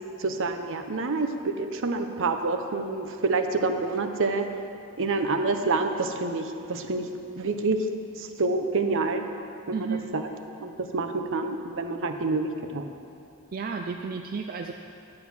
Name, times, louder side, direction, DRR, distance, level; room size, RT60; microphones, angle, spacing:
voice 1, 0.2-4.4 5.0-7.1 7.4-7.8 8.2-9.2 9.8-10.2 10.6-12.9, right 3 dB, 60° right, 6 dB, 0.8 m, -27 dB
voice 2, 9.7-10.2 13.5-14.7, right 5 dB, 40° right, 4 dB, 0.4 m, -32 dB
11.5 x 7.6 x 6.1 m, 2.7 s
head